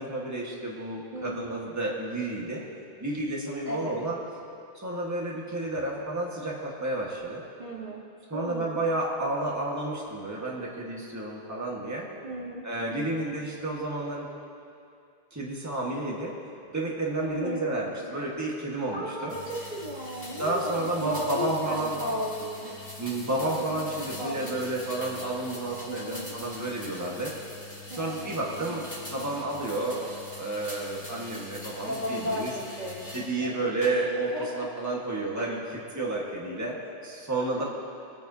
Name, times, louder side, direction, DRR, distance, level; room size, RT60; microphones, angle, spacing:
voice 1, 0.0-2.6 3.0-4.2 4.7-7.4 8.3-12.1 12.6-14.3 15.3-16.4 16.7-19.3 20.4-22.0 23.0-27.3 27.9-30.1 30.4-32.5 33.1-37.6, right 2 dB, 15° right, -3 dB, 1.5 m, -31 dB
voice 2, 1.1-1.5 3.6-4.0 7.6-8.0 8.3-8.8 12.2-13.2 17.2-17.7 18.9-22.7 23.4-25.1 25.9-26.3 27.9-28.9 31.8-33.7 34.3-34.7 37.4-37.6, equal, 45° right, -4 dB, 1.4 m, -36 dB
sound 1, 19.3-33.3 33.8-34.4, left 1 dB, 15° left, 2.6 m, -43 dB
24.5 x 9.1 x 2.8 m, 2.5 s
omnidirectional pair, 1.1 m